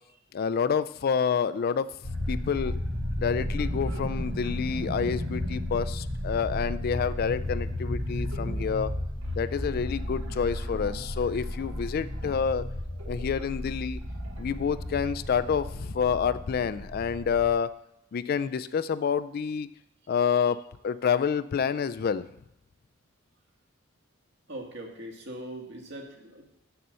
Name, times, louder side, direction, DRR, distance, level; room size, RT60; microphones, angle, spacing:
voice 1, 0.3-1.9 2.3-2.7 3.2-8.9 9.4-12.7 13.1-14.0 14.4-17.7 18.1-19.7 20.1-22.3, left 6 dB, 50° left, 14 dB, 0.3 m, -28 dB
sound 1, 2.0-17.5, left 1 dB, 80° right, 1.5 m, -33 dB
voice 2, 24.5-26.6, right 1 dB, 60° right, 1 dB, 1.8 m, -41 dB
6.9 x 6.6 x 7.5 m, 0.83 s
head